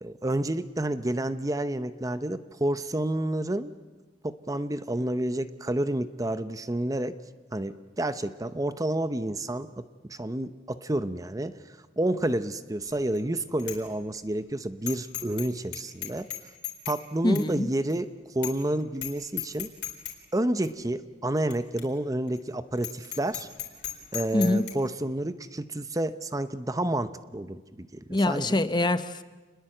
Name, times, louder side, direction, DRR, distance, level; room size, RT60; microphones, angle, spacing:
voice 1, 0.0-3.7 4.2-7.2 7.5-11.5 12.0-16.3 16.9-18.1 18.3-19.7 20.3-23.5 24.1-28.6, right 1 dB, 20° right, 12 dB, 0.7 m, -29 dB
Bicycle bell, 12.9-13.2 13.6-13.8 14.1-14.2 14.9-15.5 15.7-17.0 17.3-17.5 17.9-18.0 18.4-18.7 18.9-19.1 19.4-20.1 20.6-20.7 21.5-21.6 21.8-21.9 22.3-22.4 22.8-24.7, left 13 dB, 85° left, 4.3 m, -35 dB
voice 2, 17.2-17.7 24.3-24.7 28.1-29.2, left 1 dB, 25° left, 12 dB, 0.8 m, -24 dB
28.5 x 21.0 x 7.7 m, 1.3 s
head